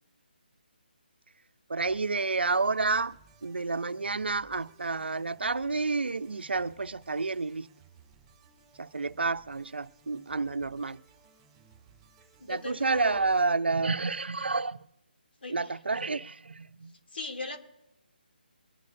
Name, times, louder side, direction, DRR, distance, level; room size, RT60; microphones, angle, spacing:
voice 1, 1.7-3.2 3.4-7.7 8.8-11.0 12.5-14.8 15.5-17.0, right 3 dB, 90° right, 0.7 m, -29 dB
sound 1, 1.8-13.5, right 6 dB, 10° right, 2.4 m, -60 dB
voice 2, 12.4-13.3 15.4-16.1 17.1-17.6, left 3 dB, 75° left, 2.6 m, -39 dB
23.0 x 11.0 x 2.6 m
hypercardioid pair, 170°, 6 cm